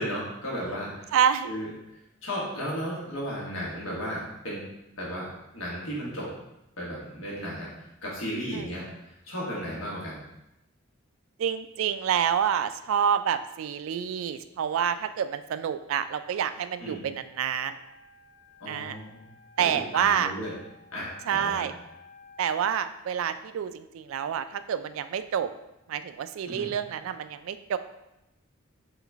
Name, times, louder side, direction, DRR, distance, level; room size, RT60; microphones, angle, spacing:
voice 1, 0.0-1.1 1.4-1.7 2.2-4.6 5.0-6.3 6.8-7.7 8.0-10.2 16.8-17.0 18.6-19.3 19.6-20.5 20.9-21.7 26.4-26.7, equal, 85° left, -5 dB, 1.4 m, -34 dB
voice 2, 1.1-1.5 8.5-8.7 11.4-17.8 18.7-19.0 19.6-20.3 21.3-21.7 22.4-25.5 25.9-27.8, right 8 dB, 75° right, 12 dB, 0.3 m, -28 dB
Wind instrument woodwind instrument, 17.4-22.7, left 4 dB, 50° left, 0.9 m, -55 dB
4.1 x 3.7 x 3.4 m, 0.90 s
head